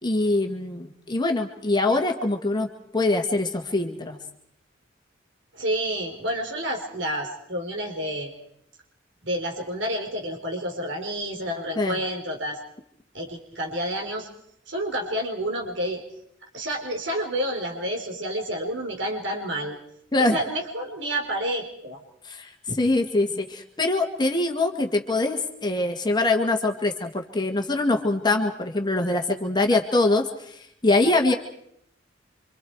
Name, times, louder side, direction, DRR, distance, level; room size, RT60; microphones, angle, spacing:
voice 1, 0.0-2.7 2.9-4.2 11.8-12.0 20.1-20.4 22.2-31.3, left 2 dB, 20° left, 3 dB, 1.7 m, -23 dB
voice 2, 5.5-8.3 9.2-12.6 13.1-14.3 14.7-16.0 16.5-19.8 20.2-22.0, equal, 65° right, 1 dB, 3.9 m, -29 dB
27.5 x 26.0 x 4.7 m, 0.74 s
head